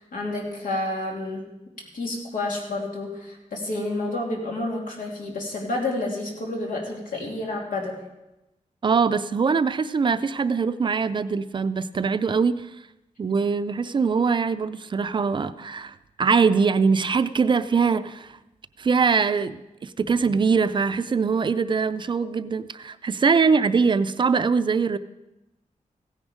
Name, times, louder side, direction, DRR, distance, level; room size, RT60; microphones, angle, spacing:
voice 1, 0.0-1.4 1.9-8.0, left 2 dB, 90° left, -1 dB, 2.9 m, -29 dB
voice 2, 8.8-12.7 13.2-18.4 18.8-25.0, right 5 dB, 35° right, 12 dB, 0.4 m, -22 dB
16.0 x 10.0 x 5.0 m, 0.96 s
wide cardioid pair, 180°, 13 cm